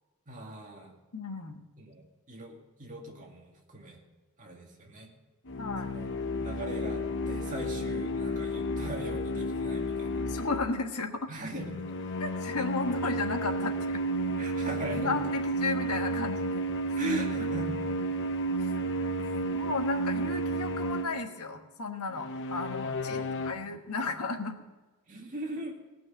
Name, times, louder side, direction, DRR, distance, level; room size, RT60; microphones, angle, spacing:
voice 1, 0.3-0.9 1.8-2.0 2.3-4.0 4.4-5.1 5.8-6.1 6.4-10.3 11.3-11.8 14.4-15.2 16.9-17.7 23.1-23.6 25.1-25.8, right 1 dB, 35° right, 0 dB, 2.2 m, -40 dB
voice 2, 1.1-1.6 5.6-6.0 10.3-11.3 12.2-14.0 15.0-16.7 18.6-18.8 19.5-24.6, left 4 dB, 85° left, 5 dB, 1.3 m, -34 dB
sound 1, 5.5-10.8 11.5-21.3 22.1-23.5, right 1 dB, 55° left, 0.9 m, -32 dB
17.0 x 6.0 x 8.8 m, 1.2 s
head